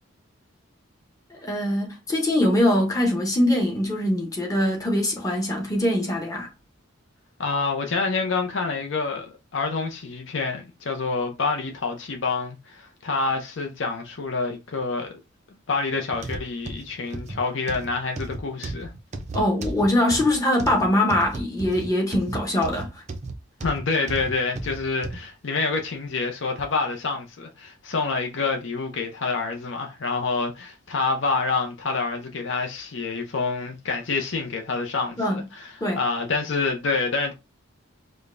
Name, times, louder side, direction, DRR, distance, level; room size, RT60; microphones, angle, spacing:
voice 1, 1.3-6.5 19.3-23.0 35.2-35.4 35.8-36.0, left 1 dB, 15° left, 0.8 m, -23 dB
voice 2, 7.4-15.1 15.7-18.9 23.6-37.3, left 4 dB, 65° left, 0.6 m, -27 dB
sound 1, 16.1-25.2 25.8-25.9 26.6-26.7, right 2 dB, 35° right, 0.4 m, -34 dB
5.0 x 2.2 x 2.5 m
head